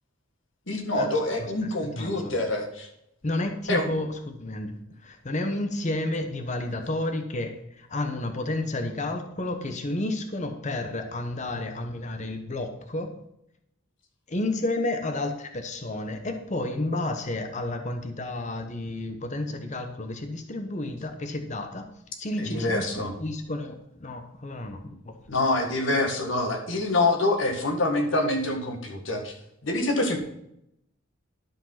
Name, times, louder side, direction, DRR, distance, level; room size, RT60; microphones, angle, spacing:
voice 1, 0.7-2.9 3.7-3.9 22.4-23.1 24.8-24.9 25.3-29.3 29.6-30.2, left 2 dB, 65° left, 2 dB, 2.0 m, -26 dB
voice 2, 1.4-2.3 3.2-4.8 5.0-13.1 14.3-21.9 22.2-22.9 23.1-25.1, left 2 dB, 35° left, 6 dB, 1.0 m, -31 dB
12.0 x 5.3 x 5.7 m, 0.78 s
head